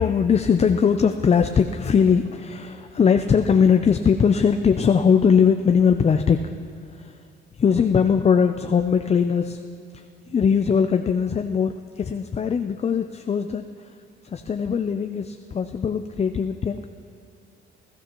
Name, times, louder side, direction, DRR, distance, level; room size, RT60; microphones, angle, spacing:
voice 1, 0.0-6.5 6.9-7.2 7.6-9.6 9.9-13.9 14.2-16.9, left 6 dB, 35° left, 7 dB, 0.5 m, -20 dB
20.0 x 13.0 x 3.0 m, 2.5 s
cardioid pair, 90°, 20 cm